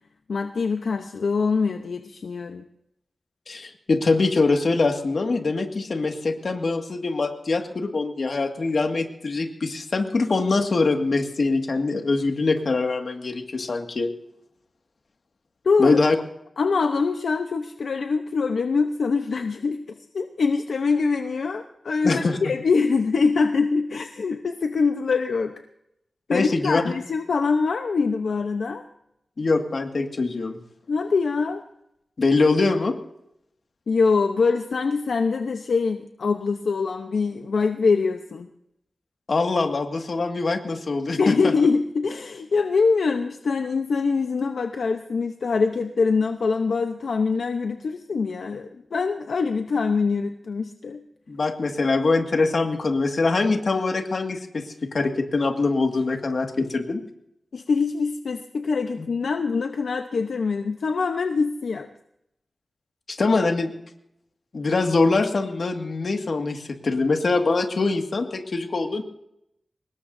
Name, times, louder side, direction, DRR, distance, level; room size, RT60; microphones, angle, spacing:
voice 1, 0.3-2.6 15.6-16.0 16.6-19.8 20.1-25.6 26.3-28.8 30.9-31.6 33.9-38.5 41.2-51.0 57.5-61.9, left 4 dB, 80° left, 6 dB, 0.9 m, -24 dB
voice 2, 3.5-14.1 15.8-16.2 22.0-22.4 26.3-26.9 29.4-30.6 32.2-32.9 39.3-41.5 51.3-57.0 63.1-63.7 64.5-69.0, left 3 dB, 60° left, 4 dB, 2.0 m, -23 dB
24.5 x 20.5 x 2.7 m, 0.79 s
wide cardioid pair, 120°, 0 cm